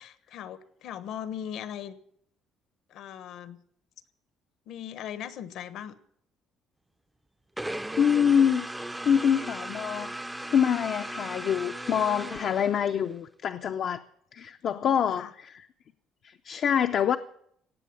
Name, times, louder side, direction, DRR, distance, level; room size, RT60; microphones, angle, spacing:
voice 1, 0.0-1.9 2.9-3.6 4.7-6.0 14.6-15.3, left 9 dB, 65° left, 1.2 m, -39 dB
sound 1, 7.6-13.2, right 1 dB, 5° right, 0.5 m, -37 dB
voice 2, 8.0-8.7 9.0-10.1 10.4-14.0 14.3-15.7 16.2-17.2, left 8 dB, 45° left, 0.5 m, -25 dB
17.5 x 7.7 x 9.6 m
cardioid pair, 165°, 0 cm